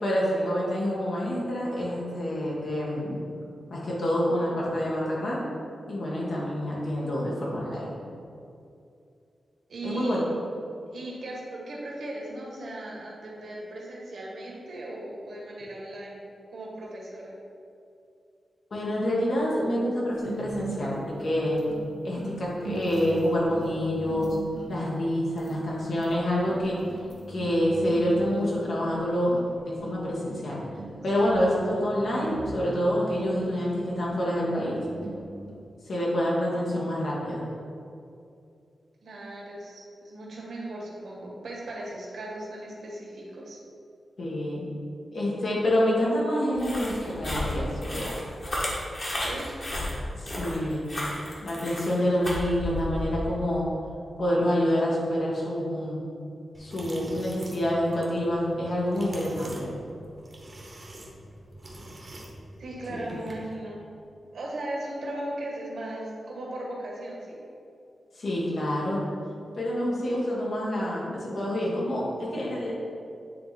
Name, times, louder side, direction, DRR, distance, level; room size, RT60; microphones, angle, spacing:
voice 1, 0.0-3.3 3.7-5.4 5.9-7.9 9.8-10.2 18.7-21.6 22.0-24.4 24.7-26.8 27.3-29.4 29.6-30.6 31.0-34.8 35.8-37.4 44.2-44.7 45.1-48.1 50.1-50.8 51.4-53.7 54.2-56.0 56.6-59.7 62.9-63.2 68.1-69.0 69.5-72.7, equal, 65° left, -5 dB, 1.6 m, -27 dB
voice 2, 9.7-10.2 10.9-16.2 16.5-17.3 31.1-31.2 39.0-43.6 49.2-49.5 62.6-63.8 64.3-67.4, right 1 dB, 75° right, -3 dB, 1.6 m, -37 dB
sound 1, 20.2-35.7, right 2 dB, 55° right, 0.8 m, -41 dB
sound 2, 46.5-53.2, left 1 dB, 35° left, 1.5 m, -33 dB
sound 3, 56.5-63.5, right 1 dB, 30° right, 1.1 m, -45 dB
9.4 x 3.4 x 4.2 m, 2.5 s
wide cardioid pair, 130°, 0 cm